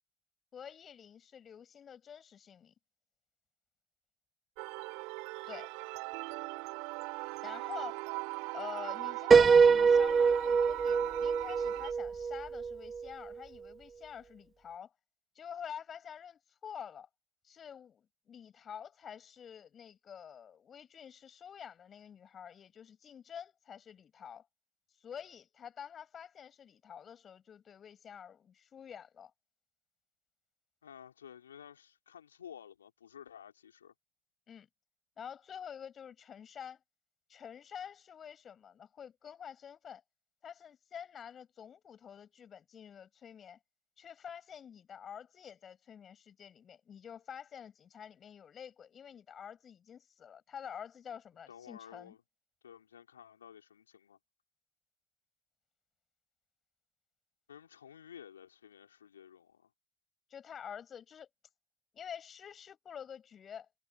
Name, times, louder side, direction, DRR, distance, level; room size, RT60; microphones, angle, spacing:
voice 1, 0.5-2.7 5.5-5.7 7.4-8.1 8.5-14.9 15.3-17.1 17.4-24.5 25.0-29.3 34.5-34.7 35.2-36.8 37.3-40.0 40.4-43.6 44.0-52.1 60.3-61.3 61.9-63.8, left 8 dB, 35° left, 7.8 m, -48 dB
sound 1, 4.6-11.9, right 30 dB, 60° right, 2.7 m, -40 dB
Piano, 9.3-13.1, right 5 dB, 25° right, 1.3 m, -24 dB
voice 2, 30.8-33.9 51.5-52.2 52.6-54.2 57.5-59.7, left 8 dB, 85° left, 3.8 m, -53 dB
hypercardioid pair, 80°, 0 cm